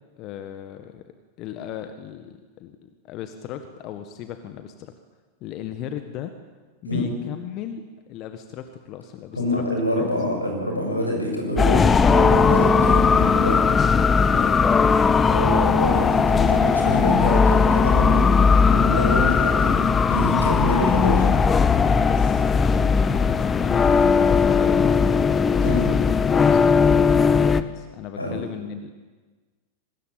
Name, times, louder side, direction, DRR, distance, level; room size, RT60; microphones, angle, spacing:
voice 1, 0.2-1.0 1.4-4.9 5.4-6.3 6.8-9.6 10.0-10.1 11.0-11.1 14.3-14.6 14.9-15.2 21.7-25.7 26.2-26.6 26.9-28.9, left 10 dB, 40° left, 8 dB, 1.7 m, -36 dB
voice 2, 9.3-13.6 15.3-18.3 18.7-21.3 25.6-25.9 28.2-28.4, left 1 dB, 85° left, 2 dB, 7.4 m, -26 dB
sound 1, 11.6-27.6, left 5 dB, 20° left, 1.1 m, -18 dB
24.5 x 20.5 x 8.8 m, 1.3 s
figure-of-eight pair, 90°, 0 cm